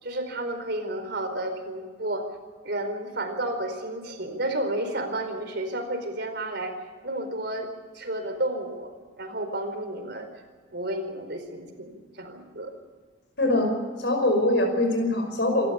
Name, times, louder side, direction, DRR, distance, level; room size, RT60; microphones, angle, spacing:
voice 1, 0.0-2.3 2.6-6.8 7.0-7.7 7.9-8.9 9.2-10.3 10.7-12.7, right 1 dB, 55° right, 7 dB, 4.5 m, -31 dB
voice 2, 13.4-13.7 14.0-15.7, left 1 dB, 60° left, 5 dB, 5.4 m, -23 dB
27.5 x 13.5 x 8.5 m, 1.4 s
head